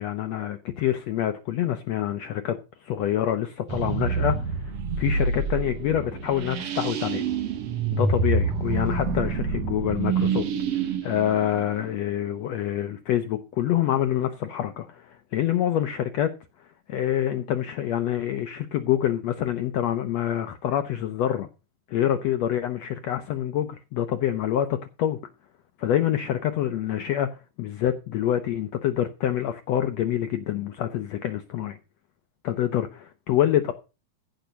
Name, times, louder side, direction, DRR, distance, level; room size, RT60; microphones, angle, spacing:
voice 1, 0.0-7.2 7.9-10.5 10.7-16.3 16.9-21.5 21.9-25.2 25.8-31.8 32.4-33.7, left 11 dB, 80° left, 1.5 m, -26 dB
sound 1, 3.7-12.3, right 4 dB, 60° right, 1.9 m, -27 dB
15.0 x 5.1 x 6.8 m
omnidirectional pair, 3.9 m